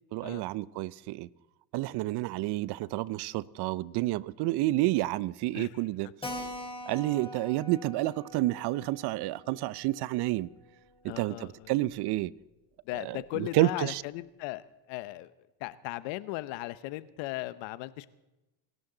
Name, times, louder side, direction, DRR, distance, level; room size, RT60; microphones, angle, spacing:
voice 1, 0.1-1.3 1.7-6.1 6.9-10.5 11.0-12.3 13.0-14.0, right 17 dB, 60° right, 0.6 m, -30 dB
Keyboard (musical), 6.2-11.3 11.5-11.6 11.9-12.0 12.3-12.4 13.0-13.3, left 1 dB, 10° left, 3.9 m, -44 dB
voice 2, 11.1-11.8 12.9-15.3 15.6-18.1, left 18 dB, 70° left, 0.9 m, -37 dB
26.0 x 12.0 x 3.9 m
supercardioid pair, 90°, 46 cm